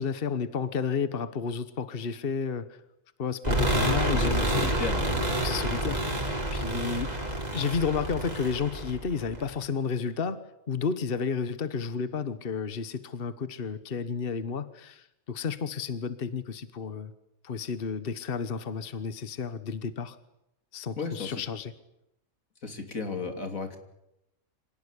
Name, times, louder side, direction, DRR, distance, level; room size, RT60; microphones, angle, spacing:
voice 1, 0.0-2.8 3.2-4.5 5.4-7.1 7.5-17.1 17.4-20.2 20.7-21.7, left 5 dB, 45° left, 13 dB, 1.3 m, -32 dB
sound 1, 3.4-9.5, right 1 dB, 30° right, 4.1 m, -28 dB
voice 2, 4.1-5.3 21.0-21.4 22.6-23.8, left 4 dB, 90° left, 6 dB, 3.5 m, -34 dB
26.0 x 18.0 x 10.0 m, 0.86 s
omnidirectional pair, 1.4 m